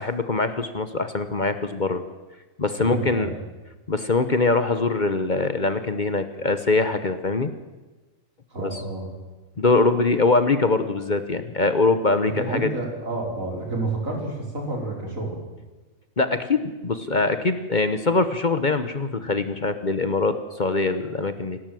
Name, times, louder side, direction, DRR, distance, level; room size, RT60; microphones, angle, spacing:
voice 1, 0.0-2.0 2.6-3.3 3.9-7.5 8.6-8.8 9.6-12.7 16.2-21.6, left 3 dB, 35° left, 10 dB, 1.1 m, -23 dB
voice 2, 2.8-3.4 8.5-9.1 12.2-15.4, right 2 dB, 75° right, 0 dB, 5.1 m, -29 dB
28.0 x 12.5 x 7.7 m, 1.2 s
omnidirectional pair, 1.4 m